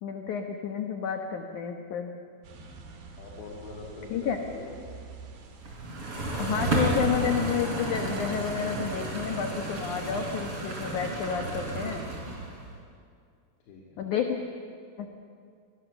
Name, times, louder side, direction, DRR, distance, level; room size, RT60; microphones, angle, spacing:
voice 1, 0.0-2.1 4.1-4.4 6.4-12.0 14.0-14.4 15.0-15.1, left 7 dB, 65° left, 4 dB, 2.0 m, -30 dB
sound 1, 2.4-9.5, right 4 dB, 60° right, 3.7 m, -48 dB
voice 2, 3.2-4.8 6.7-6.9 13.7-14.0, left 3 dB, 85° left, -3 dB, 4.8 m, -43 dB
sound 2, 5.7-12.7, right 2 dB, 35° right, 4.6 m, -32 dB
26.0 x 21.0 x 7.1 m, 2.2 s
omnidirectional pair, 5.0 m